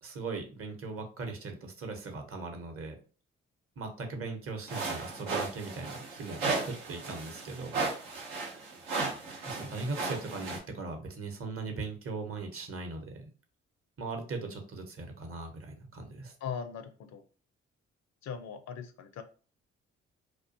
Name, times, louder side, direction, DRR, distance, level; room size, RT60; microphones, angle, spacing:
voice 1, 0.0-3.0 3.8-7.8 8.4-8.6 9.4-13.3 14.0-16.3, right 3 dB, 45° right, 4 dB, 0.8 m, -39 dB
sound 1, 4.7-10.6, right 3 dB, 85° right, 0.7 m, -35 dB
voice 2, 16.4-17.2 18.2-19.2, left 7 dB, 55° left, 9 dB, 0.5 m, -39 dB
2.4 x 2.2 x 2.6 m, 0.38 s
hypercardioid pair, 45°, 31 cm